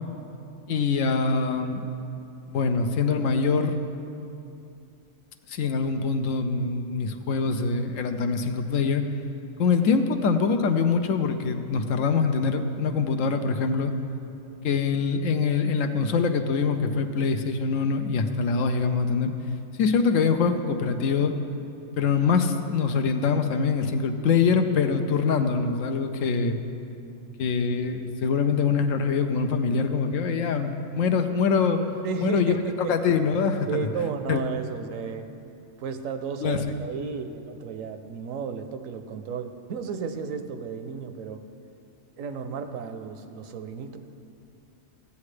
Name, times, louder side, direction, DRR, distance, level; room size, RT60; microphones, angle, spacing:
voice 1, 0.7-1.8 2.5-3.8 5.5-9.0 9.6-13.9 14.6-19.3 19.8-21.3 22.0-26.6 27.4-31.8 32.2-32.5 32.9-33.8 34.3-34.4 36.4-36.6, left 5 dB, 75° left, 7 dB, 1.0 m, -24 dB
voice 2, 32.0-32.9 33.7-35.3 35.8-41.4 42.2-44.0, right 6 dB, 75° right, 8 dB, 1.0 m, -33 dB
15.5 x 8.3 x 3.2 m, 2.7 s
omnidirectional pair, 1.4 m